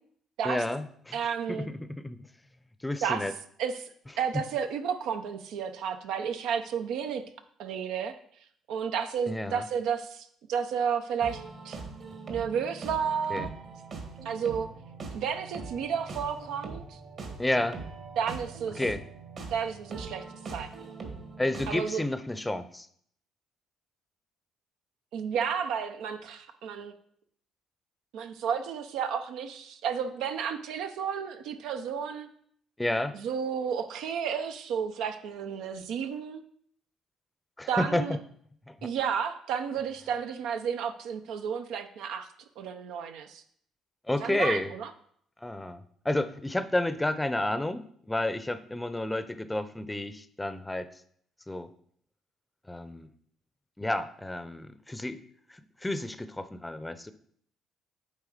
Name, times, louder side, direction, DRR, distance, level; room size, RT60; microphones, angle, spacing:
voice 1, 0.4-1.2 1.5-2.2 2.8-3.3 9.3-9.6 13.3-13.5 17.4-17.8 18.8-19.0 21.4-22.9 32.8-33.2 37.6-38.2 38.7-38.9 44.1-44.7 45.4-50.9 51.5-51.7 52.7-53.1 53.8-55.2 55.5-57.1, left 1 dB, 10° left, 12 dB, 0.6 m, -31 dB
voice 2, 1.1-1.7 3.0-3.2 3.6-3.9 4.2-7.2 7.6-8.1 8.7-11.8 12.3-13.5 14.2-14.7 15.1-17.0 18.2-18.8 19.5-20.2 20.5-20.9 21.7-22.0 25.1-26.9 28.1-32.3 33.1-36.4 37.7-38.2 38.8-42.3 42.6-43.4 44.2-44.9, right 7 dB, 80° right, 7 dB, 0.7 m, -32 dB
sound 1, 11.2-21.8, right 4 dB, 60° right, 1.8 m, -42 dB
8.6 x 3.5 x 5.0 m, 0.63 s
supercardioid pair, 75°, 0 cm